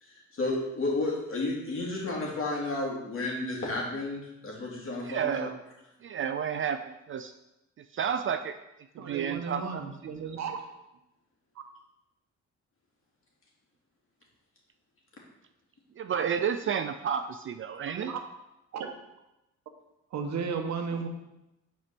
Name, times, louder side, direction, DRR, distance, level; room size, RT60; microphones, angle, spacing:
voice 1, 0.0-5.5, left 2 dB, 45° left, -2 dB, 2.5 m, -32 dB
voice 2, 5.0-5.5 6.0-7.3 7.9-8.6 9.1-9.8 16.0-18.1, right 8 dB, 45° right, 9 dB, 0.4 m, -31 dB
voice 3, 9.0-10.6 17.9-18.1 18.7-18.9 20.1-21.1, right 5 dB, 65° right, 4 dB, 1.1 m, -34 dB
6.2 x 4.4 x 5.9 m, 0.92 s
cardioid pair, 90°, 30 cm